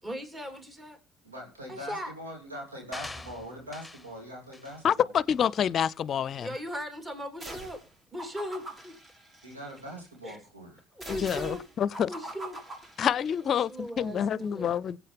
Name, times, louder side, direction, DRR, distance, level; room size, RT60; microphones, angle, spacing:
voice 1, 0.0-1.0 1.7-2.1 6.4-7.8 8.1-9.0 10.2-10.4 10.9-11.6 12.1-12.6 13.4-14.7, equal, 20° right, 3.4 m, -38 dB
voice 2, 1.2-5.1 9.4-10.8, equal, 90° right, 3.2 m, -42 dB
sound 1, 2.9-4.1 4.5-4.8 5.3-5.5, left 2 dB, 10° left, 1.1 m, -43 dB
voice 3, 4.8-6.5 11.1-12.1 13.0-15.0, left 8 dB, 50° left, 0.5 m, -27 dB
sound 2, 7.4-7.9 8.2-9.9 11.0-13.6, right 1 dB, 40° right, 6.1 m, -43 dB
23.0 x 8.3 x 3.4 m
figure-of-eight pair, 50°, 0 cm